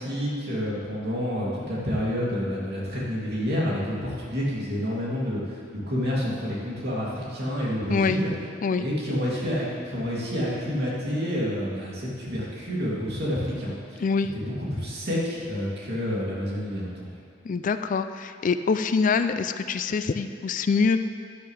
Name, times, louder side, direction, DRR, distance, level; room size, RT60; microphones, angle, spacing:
voice 1, 0.0-8.3 8.8-14.0 14.3-17.1, equal, 60° right, -6 dB, 2.8 m, -29 dB
voice 2, 14.0-14.3 17.4-21.0, left 5 dB, 45° left, 10 dB, 0.4 m, -24 dB
11.5 x 11.0 x 3.4 m, 2.2 s
head